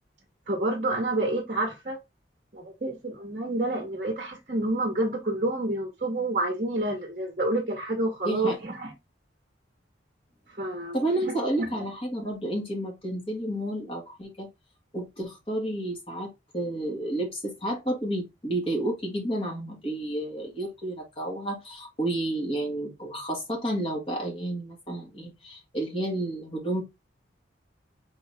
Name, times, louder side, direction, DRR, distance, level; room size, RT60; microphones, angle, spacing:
voice 1, 0.5-2.0 2.5-8.9 10.6-11.0, right 2 dB, 40° right, 0.9 m, -28 dB
voice 2, 8.2-8.6 10.9-14.5 14.9-26.8, right 1 dB, 30° left, 1.9 m, -31 dB
3.9 x 3.8 x 3.4 m
head